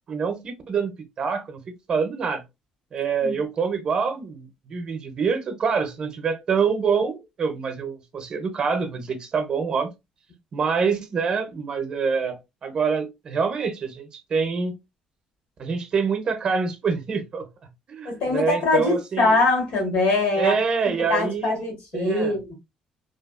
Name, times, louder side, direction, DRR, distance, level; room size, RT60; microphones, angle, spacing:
voice 1, 0.1-1.6 1.9-2.4 2.9-9.9 10.5-14.7 15.6-17.5 17.9-19.4 20.4-22.4, right 5 dB, 40° right, 0.6 m, -26 dB
voice 2, 18.0-20.6 20.8-22.5, left 2 dB, 80° left, 1.5 m, -23 dB
2.8 x 2.3 x 2.3 m
cardioid pair, 140°, 2 cm